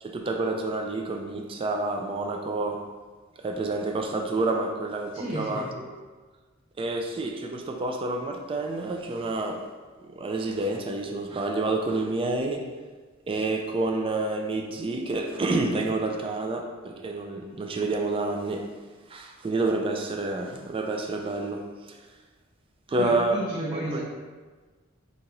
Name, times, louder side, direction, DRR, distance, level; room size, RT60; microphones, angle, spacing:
voice 1, 0.0-2.8 3.4-5.9 6.8-9.7 10.2-12.7 13.3-18.7 19.1-22.0 22.9-23.4 23.7-24.0, right 2 dB, 25° right, 2 dB, 0.3 m, -29 dB
voice 2, 5.1-5.7 23.0-24.0, right 1 dB, 45° right, -10 dB, 1.1 m, -32 dB
4.2 x 2.8 x 3.7 m, 1.4 s
head